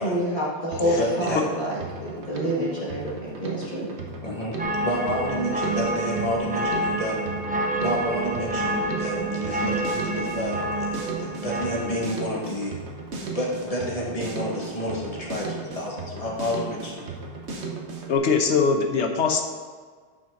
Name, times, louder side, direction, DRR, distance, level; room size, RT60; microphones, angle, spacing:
voice 1, 0.0-3.9, equal, 50° left, -7 dB, 1.9 m, -28 dB
Drum kit, 0.7-18.2, right 4 dB, 80° right, 1.4 m, -36 dB
voice 2, 0.8-1.4 4.2-7.2 7.7-12.7 13.2-17.1, left 1 dB, 35° left, -3 dB, 1.7 m, -30 dB
sound 1, 4.6-12.2, right 2 dB, 10° right, 0.5 m, -28 dB
voice 3, 18.1-19.4, left 5 dB, 80° left, 4 dB, 1.2 m, -21 dB
10.5 x 6.0 x 3.8 m, 1.5 s
omnidirectional pair, 1.1 m